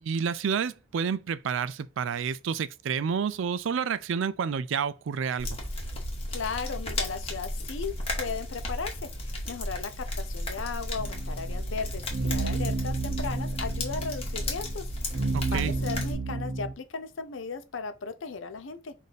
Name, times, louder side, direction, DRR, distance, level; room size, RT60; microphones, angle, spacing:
voice 1, 0.0-5.5 15.3-15.7, right 6 dB, 70° right, 0.4 m, -29 dB
village furnace crackle firewood, 5.4-16.1, left 1 dB, 30° left, 1.1 m, -34 dB
voice 2, 6.3-8.9 9.2-18.9, left 5 dB, 70° left, 0.6 m, -36 dB
sound 1, 11.0-16.7, right 3 dB, 40° right, 0.7 m, -32 dB
5.0 x 2.6 x 4.1 m
head